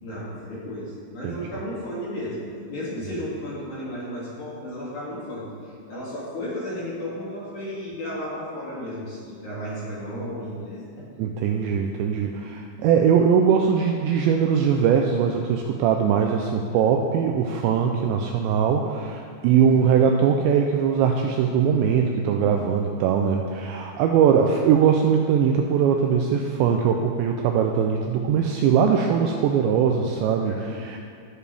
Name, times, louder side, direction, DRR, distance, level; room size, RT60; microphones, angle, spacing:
voice 1, 0.0-2.4 2.7-10.8 19.6-19.8 30.4-30.8, equal, 45° left, -8 dB, 3.1 m, -34 dB
voice 2, 11.2-31.0, right 7 dB, 85° right, 3 dB, 2.6 m, -21 dB
18.0 x 7.3 x 3.4 m, 2.2 s
omnidirectional pair, 5.6 m